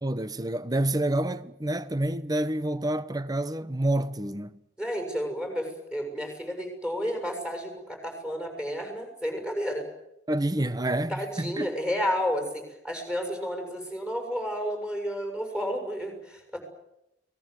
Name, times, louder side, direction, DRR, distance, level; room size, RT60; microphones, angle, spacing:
voice 1, 0.0-4.5 10.3-11.8, right 1 dB, 20° right, 1.0 m, -28 dB
voice 2, 4.8-9.9 11.1-16.6, equal, 5° right, 7.1 m, -31 dB
30.0 x 20.0 x 8.1 m
head